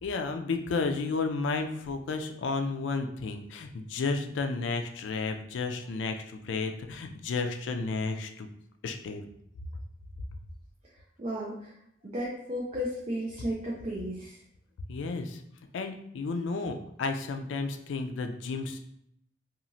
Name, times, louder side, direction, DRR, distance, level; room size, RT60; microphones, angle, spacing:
voice 1, 0.0-8.5 8.8-9.2 14.9-15.4 15.7-18.8, left 4 dB, 85° left, 6 dB, 0.3 m, -32 dB
voice 2, 11.2-11.5 12.0-14.3, equal, 35° right, -5 dB, 0.5 m, -33 dB
2.9 x 2.4 x 2.6 m, 0.73 s
head